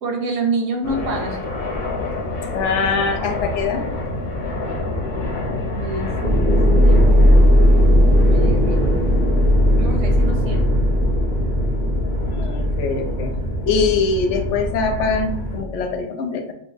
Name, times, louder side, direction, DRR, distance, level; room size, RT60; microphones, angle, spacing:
voice 1, 0.0-1.4 5.0-5.2 5.7-6.3 6.7-7.4 8.0-8.8 9.8-10.6, right 3 dB, 85° right, 2 dB, 1.1 m, -27 dB
sound 1, 0.8-15.6, left 1 dB, 45° left, 0.8 m, -26 dB
voice 2, 2.5-3.9 12.3-13.3 13.7-16.5, left 4 dB, 75° left, 5 dB, 0.9 m, -22 dB
sound 2, 6.2-16.0, equal, 40° right, 0.6 m, -18 dB
2.8 x 2.2 x 3.8 m, 0.68 s
omnidirectional pair, 1.3 m